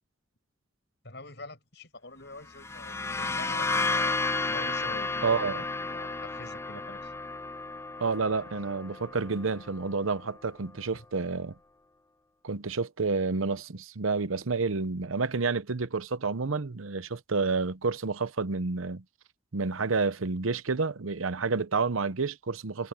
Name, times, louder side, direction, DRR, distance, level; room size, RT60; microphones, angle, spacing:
voice 1, 1.0-4.2 4.5-5.3 5.7-7.1 10.9-11.0, left 2 dB, 55° left, 6.8 m, -45 dB
sound 1, 2.5-10.1, left 3 dB, 15° left, 0.3 m, -32 dB
voice 2, 5.2-5.6 8.0-11.5 12.4-19.0 19.5-22.9, right 4 dB, 90° right, 0.9 m, -29 dB
head